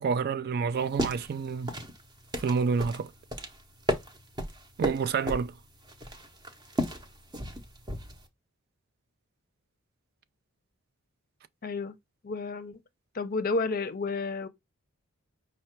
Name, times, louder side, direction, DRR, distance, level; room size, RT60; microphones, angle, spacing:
voice 1, 0.0-1.7 2.4-3.1 4.8-5.5, right 5 dB, 45° right, 0.3 m, -28 dB
sound 1, 0.8-8.3, equal, 20° right, 0.7 m, -35 dB
voice 2, 11.6-12.0 12.2-12.8 13.1-14.5, left 3 dB, 40° left, 0.6 m, -31 dB
5.5 x 2.1 x 4.3 m
head